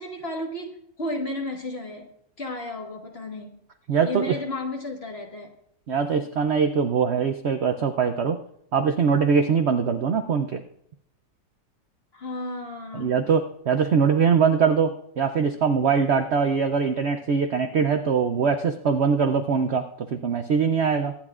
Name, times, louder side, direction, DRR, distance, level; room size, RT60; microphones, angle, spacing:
voice 1, 0.0-2.1 2.4-3.6 4.0-5.5 12.1-13.1, left 1 dB, 35° left, 2 dB, 1.6 m, -33 dB
voice 2, 3.9-4.4 5.9-8.4 8.7-10.6 12.9-21.1, right 6 dB, 80° right, 7 dB, 0.6 m, -22 dB
23.5 x 10.0 x 2.4 m, 0.73 s
omnidirectional pair, 1.9 m